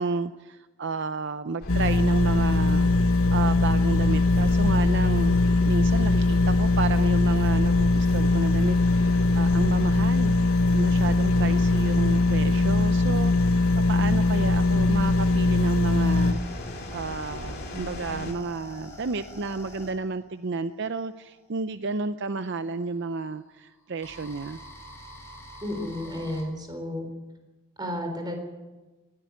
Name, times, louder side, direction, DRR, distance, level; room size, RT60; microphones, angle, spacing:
voice 1, 0.0-2.9 3.3-5.4 5.6-10.3 10.7-16.4 16.9-24.6, right 4 dB, 55° right, 11 dB, 0.6 m, -31 dB
sound 1, 1.6-18.3, left 1 dB, 50° left, 2.9 m, -38 dB
sound 2, 1.7-16.3, left 2 dB, 85° left, 1.2 m, -21 dB
sound 3, 16.0-21.6 22.6-26.4, left 1 dB, 15° left, 6.7 m, -46 dB
voice 2, 25.6-27.1 27.8-28.4, left 1 dB, 20° right, 4 dB, 4.1 m, -32 dB
19.5 x 14.5 x 9.8 m, 1.2 s
head